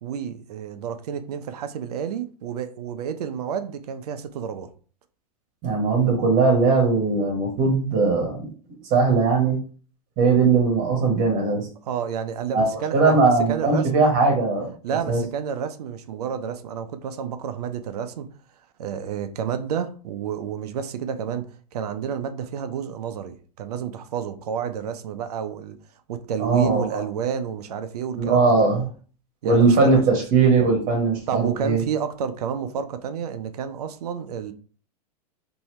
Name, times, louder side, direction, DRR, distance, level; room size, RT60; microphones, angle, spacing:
voice 1, 0.0-4.7 11.8-14.1 14.8-18.3 18.8-25.8 26.1-28.5 29.4-30.2 31.3-34.5, right 8 dB, 80° right, 0.5 m, -30 dB
voice 2, 5.6-8.5 8.9-9.6 10.2-11.7 12.5-14.7 15.1-15.2 26.4-27.0 28.2-28.9 29.4-31.8, right 4 dB, 45° right, 1.1 m, -19 dB
2.8 x 2.6 x 3.1 m
hypercardioid pair, 110°, 20 cm